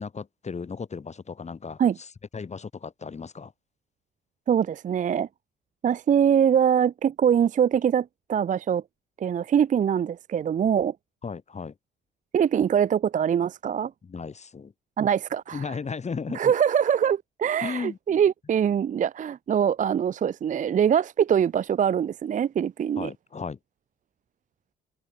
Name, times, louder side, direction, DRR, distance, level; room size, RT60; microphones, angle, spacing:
voice 1, 0.0-3.5 11.2-11.7 14.0-14.7 15.5-16.5 17.6-18.0 23.0-23.6, left 5 dB, 35° left, 2.8 m, -35 dB
voice 2, 4.5-5.3 5.8-8.8 9.2-11.0 12.3-13.9 15.0-15.6 16.3-23.1, right 8 dB, 40° right, 0.5 m, -23 dB
cardioid pair, 90°, 20 cm